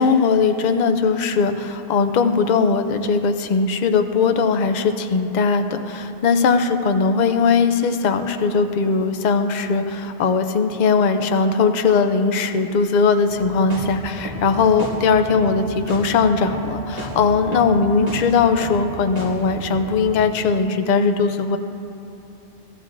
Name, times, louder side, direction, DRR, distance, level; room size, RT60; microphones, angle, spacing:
voice 1, 0.0-21.6, left 5 dB, 50° left, 7 dB, 0.6 m, -19 dB
sound 1, 13.3-20.2, right 1 dB, 35° right, 1.7 m, -34 dB
15.0 x 13.5 x 2.6 m, 3.0 s
omnidirectional pair, 1.2 m